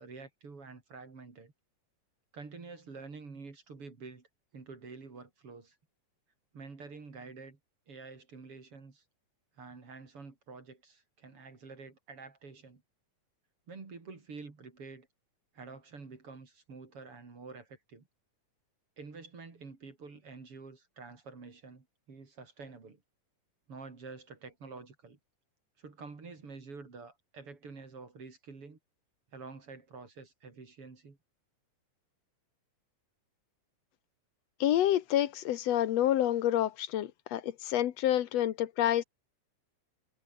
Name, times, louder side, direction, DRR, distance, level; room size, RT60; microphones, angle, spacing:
voice 1, 0.0-1.5 2.3-4.3 4.5-5.8 6.5-7.6 7.9-9.0 9.5-12.8 13.7-15.1 15.5-18.1 19.0-23.0 23.7-25.2 25.8-28.8 29.3-31.2, right 4 dB, 45° right, 4.7 m, -48 dB
voice 2, 34.6-39.0, left 12 dB, 65° left, 2.1 m, -28 dB
omnidirectional pair, 3.5 m